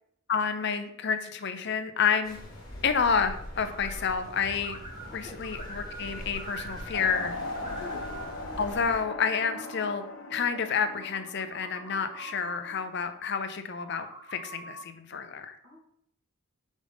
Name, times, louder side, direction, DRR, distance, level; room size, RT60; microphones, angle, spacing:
voice 1, 0.3-2.4 2.8-4.8 5.1-7.3 8.6-10.0 10.3-15.6, left 6 dB, 50° left, 8 dB, 0.6 m, -29 dB
sound 1, 2.2-9.0, left 1 dB, 20° left, 1.6 m, -43 dB
sound 2, 3.6-4.3 4.5-7.2 7.4-8.3 8.8-9.8 10.8-12.6 13.7-14.9, right 2 dB, 20° right, 0.8 m, -45 dB
voice 2, 5.0-5.4 7.6-8.1 15.6-15.8, left 3 dB, 70° right, -3 dB, 2.5 m, -46 dB
sound 3, 6.9-12.9, left 2 dB, 70° left, 1.0 m, -39 dB
6.4 x 5.2 x 3.4 m, 0.70 s
head